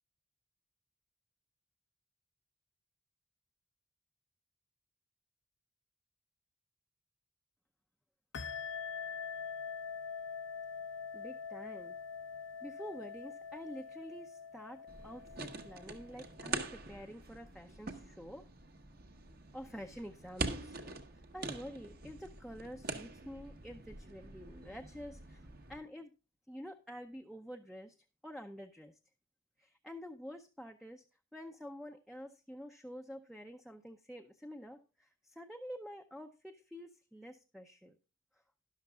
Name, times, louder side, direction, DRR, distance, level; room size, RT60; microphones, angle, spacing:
sound 1, 8.3-16.5, left 6 dB, 65° left, 0.7 m, -44 dB
voice 1, 11.1-12.0 12.6-18.4 19.5-20.9 21.3-26.1 26.5-28.0 28.2-28.9 29.6-31.0 31.3-38.0, equal, ahead, 4 dB, 0.6 m, -48 dB
sound 2, 14.9-25.8, right 3 dB, 50° right, 1.3 m, -44 dB
12.5 x 11.5 x 2.3 m, 0.31 s
head